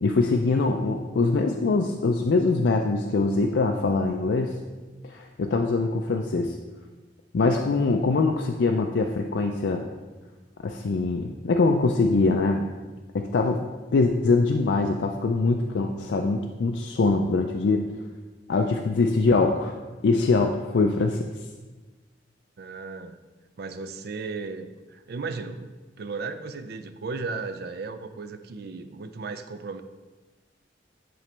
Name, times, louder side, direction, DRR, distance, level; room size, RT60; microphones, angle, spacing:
voice 1, 0.0-4.5 5.0-6.5 7.3-9.9 10.6-12.7 13.1-13.6 13.9-17.8 18.5-19.7 20.0-21.3, left 3 dB, 70° left, 3 dB, 0.4 m, -23 dB
voice 2, 22.6-23.2 23.6-29.8, right 4 dB, 60° right, 10 dB, 0.4 m, -35 dB
10.0 x 3.9 x 3.3 m, 1.2 s
head